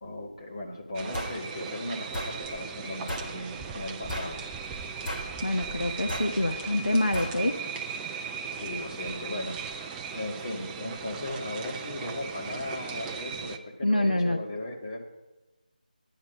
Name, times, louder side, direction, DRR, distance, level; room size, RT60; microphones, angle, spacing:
voice 1, 0.0-4.4 8.5-15.0, left 2 dB, 35° left, 0 dB, 2.0 m, -37 dB
sound 1, 0.9-13.6, right 6 dB, 5° right, 0.3 m, -38 dB
sound 2, 1.1-1.4 2.1-2.4 3.1-3.3 4.1-4.4 5.1-5.3 6.1-6.3 7.1-7.4, equal, 15° left, 1.5 m, -34 dB
voice 2, 5.4-7.5 13.8-14.4, left 1 dB, 80° left, 5 dB, 1.1 m, -26 dB
11.5 x 10.0 x 5.0 m, 1.1 s
figure-of-eight pair, 160°, 5 cm